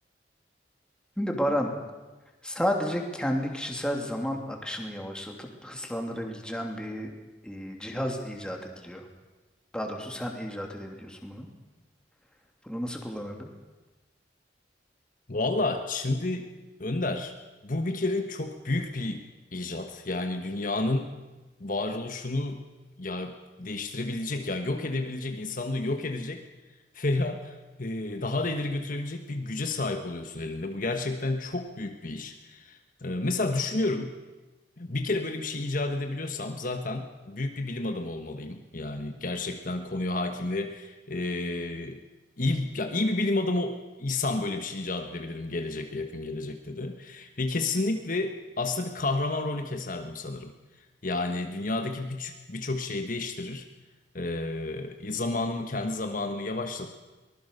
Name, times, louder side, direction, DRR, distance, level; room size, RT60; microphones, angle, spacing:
voice 1, 1.2-1.7 2.4-7.1 7.4-9.1 9.7-11.5 12.6-13.5, equal, 5° left, 2 dB, 2.8 m, -32 dB
voice 2, 15.3-16.5 16.8-17.3 17.6-19.2 19.5-21.1 21.6-22.6 23.0-26.4 26.9-34.1 34.8-42.0 42.4-50.5 51.0-53.6 54.1-56.9, left 2 dB, 50° left, 5 dB, 1.4 m, -31 dB
23.5 x 19.5 x 6.7 m, 1.2 s
head